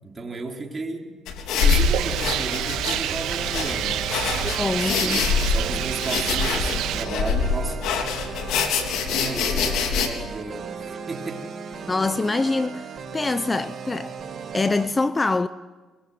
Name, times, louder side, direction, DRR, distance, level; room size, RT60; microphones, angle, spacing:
voice 1, 0.0-1.2 1.5-4.1 5.0-7.9 9.1-11.9, right 3 dB, 30° right, 4.8 m, -34 dB
sound 1, 1.3-10.1, left 5 dB, 90° left, 3.6 m, -25 dB
Rain, 1.6-7.0, right 11 dB, 85° right, 1.9 m, -28 dB
sound 2, 2.0-14.9, right 6 dB, 45° right, 5.1 m, -37 dB
voice 2, 4.4-5.3 8.5-8.7 11.9-14.2 14.5-15.5, left 3 dB, 20° left, 0.7 m, -25 dB
23.5 x 23.0 x 9.7 m
cardioid pair, 100°, 0 cm